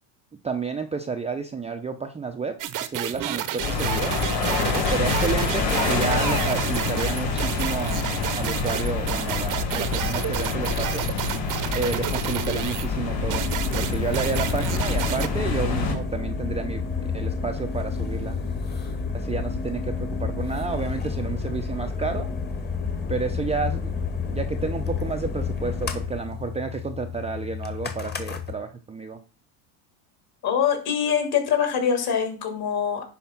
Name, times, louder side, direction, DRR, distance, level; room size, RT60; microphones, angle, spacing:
voice 1, 0.4-2.6 2.8-4.1 4.7-8.0 8.4-11.1 11.7-13.5 13.7-18.3 19.1-22.3 23.1-23.9 24.3-29.2, right 4 dB, 15° right, 4 dB, 0.6 m, -30 dB
sound 1, 2.6-12.9 13.3-15.3, right 11 dB, 40° right, 0.8 m, -31 dB
sound 2, 3.6-15.9, left 4 dB, 70° left, 4.6 m, -27 dB
sound 3, 13.1-28.5, left 5 dB, 20° left, 1.4 m, -30 dB
voice 2, 30.4-33.0, left 8 dB, 45° left, 4 dB, 2.9 m, -24 dB
10.5 x 3.5 x 5.8 m, 0.35 s
supercardioid pair, 110°, 50 cm